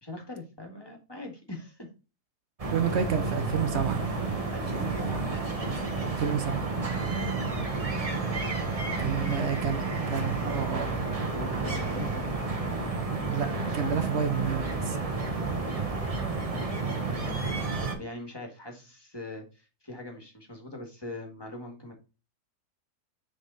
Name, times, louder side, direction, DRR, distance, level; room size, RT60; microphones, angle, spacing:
voice 1, 0.0-1.9 4.5-5.2 7.3-7.5 9.0-10.0 11.2-12.3 16.4-21.9, left 2 dB, 15° left, 1.7 m, -42 dB
sound 1, 2.6-17.9, right 3 dB, 25° right, 1.0 m, -31 dB
voice 2, 2.7-4.0 6.2-6.7 9.0-9.8 10.1-10.9 13.3-15.0, right 7 dB, 55° right, 0.8 m, -30 dB
6.7 x 3.7 x 3.9 m
omnidirectional pair, 1.7 m